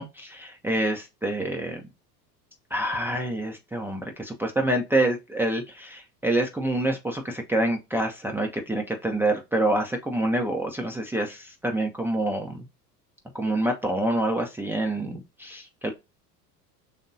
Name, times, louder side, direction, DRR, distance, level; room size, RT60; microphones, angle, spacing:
voice 1, 0.0-1.8 2.7-12.7 13.3-15.9, right 1 dB, 5° right, 0.4 m, -27 dB
5.5 x 3.6 x 2.5 m
figure-of-eight pair, 75°, 49 cm